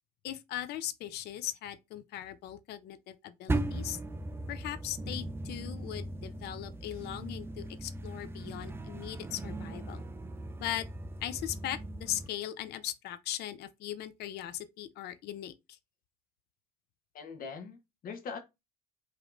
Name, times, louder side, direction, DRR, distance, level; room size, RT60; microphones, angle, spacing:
voice 1, 0.2-4.0 4.5-10.0 10.6-10.8 11.2-15.8, left 12 dB, 75° left, 0.5 m, -39 dB
sound 1, 3.5-12.3, right 2 dB, 15° right, 0.4 m, -38 dB
voice 2, 17.1-18.4, left 5 dB, 55° left, 1.2 m, -42 dB
4.9 x 3.1 x 2.6 m
cardioid pair, 110°, 17 cm